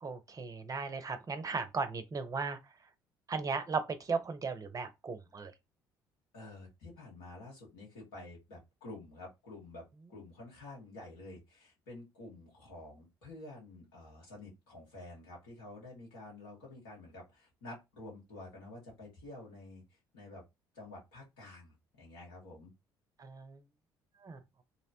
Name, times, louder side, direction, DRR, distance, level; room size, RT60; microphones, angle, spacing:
voice 1, 0.0-2.6 3.3-5.5 23.2-23.6 24.2-24.4, right 4 dB, 35° right, 0.5 m, -36 dB
voice 2, 6.3-19.8 20.1-20.4 20.7-22.7, left 2 dB, 80° left, 1.4 m, -50 dB
2.8 x 2.1 x 2.7 m
hypercardioid pair, 55°, 11 cm